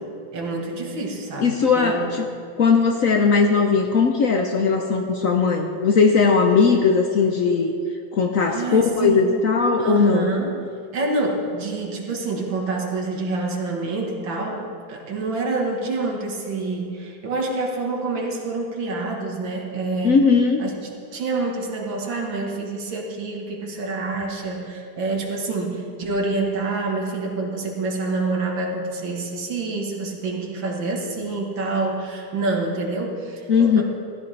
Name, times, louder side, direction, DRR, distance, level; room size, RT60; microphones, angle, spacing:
voice 1, 0.3-2.1 8.5-9.3 9.8-10.7 10.9-20.2 20.6-33.8, right 3 dB, 80° right, 0 dB, 2.2 m, -27 dB
voice 2, 1.4-2.3 2.6-7.7 8.1-10.3 20.0-20.7 33.5-33.8, left 5 dB, 60° left, 3 dB, 0.9 m, -18 dB
14.5 x 13.0 x 3.3 m, 2.4 s
omnidirectional pair, 2.1 m